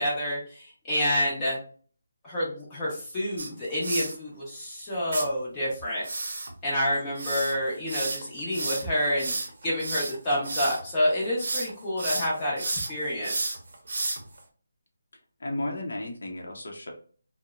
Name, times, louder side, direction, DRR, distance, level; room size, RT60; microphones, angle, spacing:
voice 1, 0.0-1.6 2.2-6.0 6.6-9.3 9.6-13.6, equal, 15° left, -6 dB, 0.6 m, -28 dB
sound 1, 3.4-4.1 5.1-5.3 6.0-10.8 11.2-11.7 12.0-14.4, right 2 dB, 45° right, 0.7 m, -32 dB
voice 2, 15.4-16.9, left 1 dB, 65° left, 0 dB, 0.6 m, -33 dB
2.8 x 2.0 x 2.3 m, 0.43 s
hypercardioid pair, 175°, 0 cm